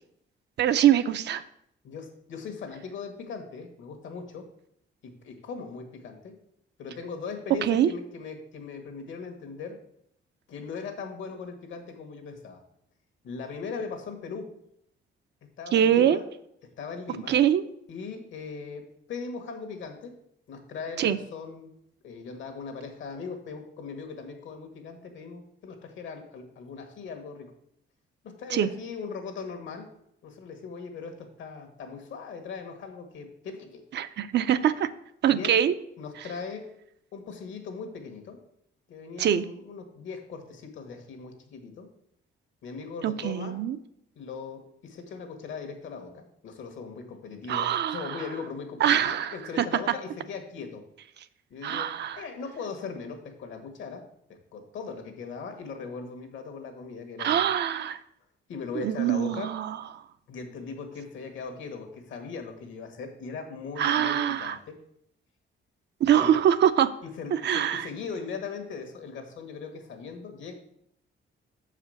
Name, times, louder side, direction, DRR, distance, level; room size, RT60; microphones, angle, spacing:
voice 1, 0.6-1.4 7.6-7.9 15.7-16.2 17.3-17.6 21.0-21.2 28.5-28.7 33.9-34.9 35.2-35.7 39.2-39.4 43.0-43.8 47.5-48.0 48.8-49.7 51.6-52.2 57.2-58.0 58.8-59.8 63.8-64.6 66.0-66.9 67.4-67.9, right 10 dB, 60° right, 12 dB, 0.5 m, -23 dB
voice 2, 1.8-4.5 5.0-6.3 6.8-9.8 10.5-12.6 13.2-14.5 15.6-16.3 16.8-17.4 17.9-20.1 20.5-21.7 22.0-27.5 28.2-29.9 30.2-33.8 35.3-35.6 36.0-36.7 37.1-38.4 38.9-41.9 42.6-43.6 44.1-50.8 51.5-57.6 58.5-59.5 60.3-64.8 66.2-66.3 67.0-70.5, left 5 dB, 75° left, 5 dB, 1.4 m, -39 dB
6.9 x 4.9 x 6.4 m, 0.73 s
cardioid pair, 155°, 20 cm